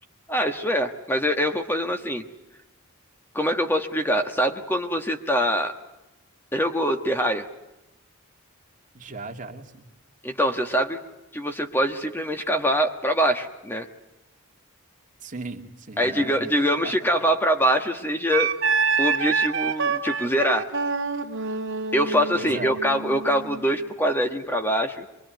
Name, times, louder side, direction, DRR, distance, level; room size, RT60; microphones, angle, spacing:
voice 1, 0.3-2.2 3.3-5.7 6.5-7.5 10.2-11.0 11.3-13.9 16.0-18.5 19.0-20.7 21.9-25.1, equal, 10° left, 6 dB, 1.4 m, -24 dB
voice 2, 8.9-9.9 15.2-17.0 22.3-22.8, right 3 dB, 35° right, 3 dB, 2.6 m, -38 dB
Wind instrument woodwind instrument, 18.3-23.7, right 5 dB, 60° right, 2.6 m, -26 dB
24.5 x 23.5 x 9.2 m, 0.94 s
head